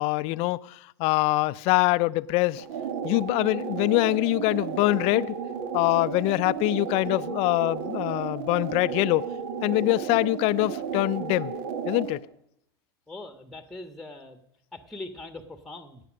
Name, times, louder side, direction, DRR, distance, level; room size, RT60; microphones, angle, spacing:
voice 1, 0.0-2.6 3.0-5.3 5.7-9.2 9.6-11.5 11.8-12.2, left 20 dB, 55° left, 0.5 m, -24 dB
sound 1, 2.6-12.2, right 7 dB, 65° right, 1.9 m, -33 dB
voice 2, 13.1-14.4 14.7-16.0, left 2 dB, ahead, 1.5 m, -41 dB
17.0 x 9.9 x 6.4 m
hypercardioid pair, 90°, 13 cm